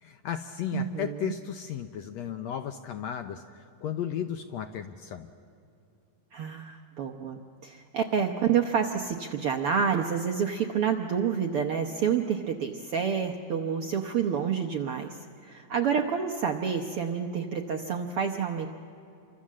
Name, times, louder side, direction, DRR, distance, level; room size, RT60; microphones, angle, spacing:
voice 1, 0.0-5.3, left 9 dB, 75° left, 8 dB, 1.6 m, -35 dB
voice 2, 0.7-1.3 6.3-18.7, right 7 dB, 70° right, 3 dB, 1.3 m, -28 dB
28.0 x 24.5 x 7.5 m, 2.6 s
omnidirectional pair, 3.9 m